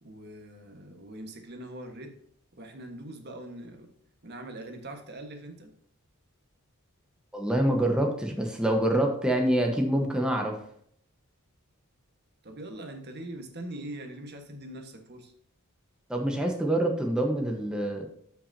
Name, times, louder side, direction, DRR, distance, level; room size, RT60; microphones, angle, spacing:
voice 1, 0.0-2.1 2.5-3.9 4.2-5.7 12.4-15.3, right 1 dB, 50° right, 4 dB, 1.4 m, -42 dB
voice 2, 7.3-10.6 16.1-18.0, right 1 dB, 5° right, 1 dB, 1.1 m, -26 dB
14.0 x 5.9 x 2.8 m, 0.64 s
head